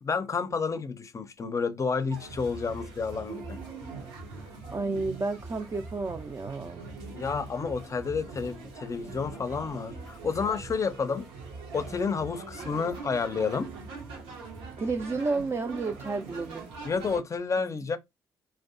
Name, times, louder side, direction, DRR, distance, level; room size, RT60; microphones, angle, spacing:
voice 1, 0.0-3.6 7.1-11.3 11.7-13.7 16.8-18.0, left 5 dB, 35° left, 0.5 m, -30 dB
sound 1, 2.1-17.2, right 4 dB, 85° right, 0.7 m, -42 dB
voice 2, 4.4-6.8 14.8-16.7, right 3 dB, 30° right, 0.4 m, -31 dB
2.6 x 2.2 x 2.5 m
hypercardioid pair, 55°, 9 cm